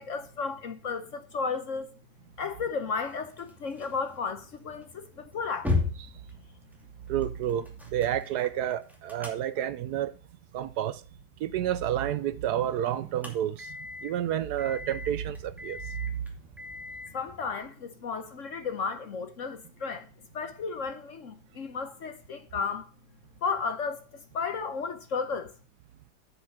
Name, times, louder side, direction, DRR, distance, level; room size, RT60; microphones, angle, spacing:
voice 1, 0.0-1.9 2.4-5.9 17.1-20.1 20.3-22.9 23.4-25.5, left 5 dB, 55° left, 1.0 m, -34 dB
sound 1, 3.0-17.6, left 3 dB, ahead, 2.3 m, -39 dB
voice 2, 7.1-10.1 10.5-11.0 11.4-13.8 14.0-15.8, right 11 dB, 70° right, 1.1 m, -30 dB
8.0 x 7.1 x 5.0 m
omnidirectional pair, 1.9 m